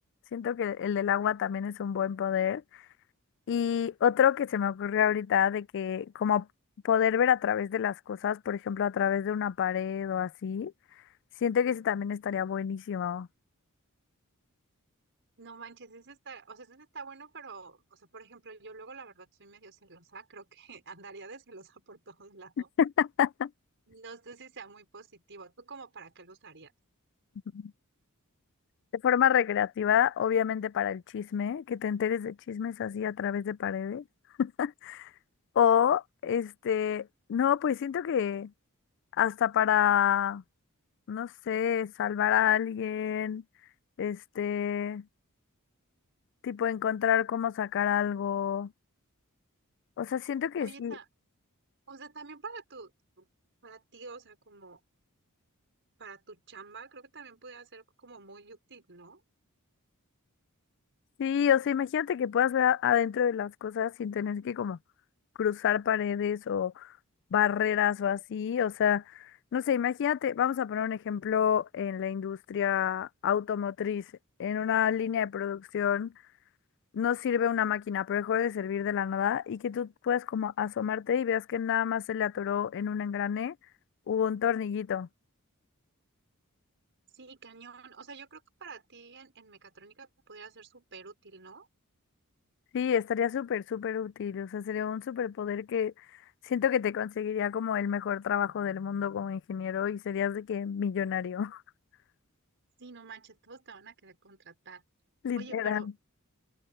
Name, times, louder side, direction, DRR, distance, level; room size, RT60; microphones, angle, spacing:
voice 1, 0.3-2.6 3.5-6.5 6.8-10.7 11.4-13.3 22.8-23.5 27.5-27.7 28.9-34.0 34.4-35.1 35.6-38.5 39.2-40.4 41.1-43.4 44.0-45.0 46.4-48.7 50.0-51.0 61.2-64.8 65.4-66.9 67.3-74.0 74.4-76.1 76.9-83.5 84.1-85.1 92.7-95.9 96.4-101.6 105.2-105.9, left 8 dB, 55° left, 0.3 m, -28 dB
voice 2, 15.4-22.7 23.9-26.7 50.6-51.1 51.9-52.9 53.2-53.3 53.6-54.8 56.0-59.2 87.1-91.7 102.8-104.8 105.4-105.9, right 4 dB, 55° right, 5.2 m, -48 dB
head